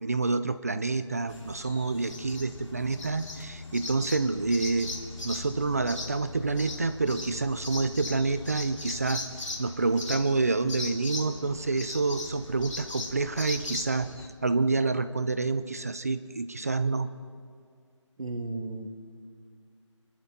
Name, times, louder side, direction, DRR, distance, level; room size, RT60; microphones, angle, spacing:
voice 1, 0.0-4.9 5.2-9.2 9.6-14.1 14.4-17.1, right 3 dB, 30° right, 12 dB, 0.4 m, -28 dB
sound 1, 1.3-14.3, left 2 dB, 75° left, 2.5 m, -39 dB
voice 2, 18.2-18.9, right 2 dB, 85° right, 4 dB, 1.9 m, -34 dB
28.0 x 12.5 x 3.9 m, 2.1 s
figure-of-eight pair, 170°, 16 cm